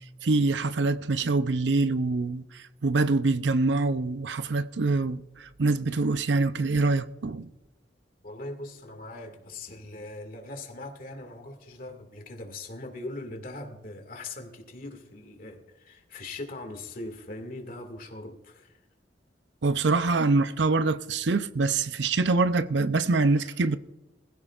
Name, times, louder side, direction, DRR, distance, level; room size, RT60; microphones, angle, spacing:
voice 1, 0.2-7.5 19.6-23.8, right 3 dB, 80° right, 0.6 m, -25 dB
voice 2, 8.2-18.8 23.3-23.6, left 2 dB, 55° left, 2.2 m, -41 dB
21.5 x 15.0 x 2.5 m
head